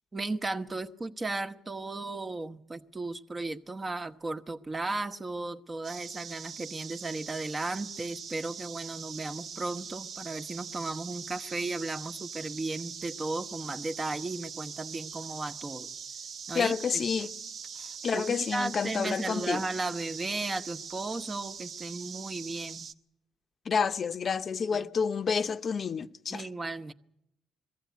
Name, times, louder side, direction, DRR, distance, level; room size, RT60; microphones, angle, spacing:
voice 1, 0.1-15.9 16.5-16.7 17.7-22.9 24.7-24.9 26.3-26.9, right 2 dB, 30° right, 1.1 m, -35 dB
sound 1, 5.8-22.9, right 6 dB, 60° right, 0.9 m, -42 dB
voice 2, 16.5-17.3 18.0-19.6 23.7-26.4, left 6 dB, 50° left, 0.8 m, -29 dB
21.5 x 15.0 x 9.4 m
supercardioid pair, 75°, 0 cm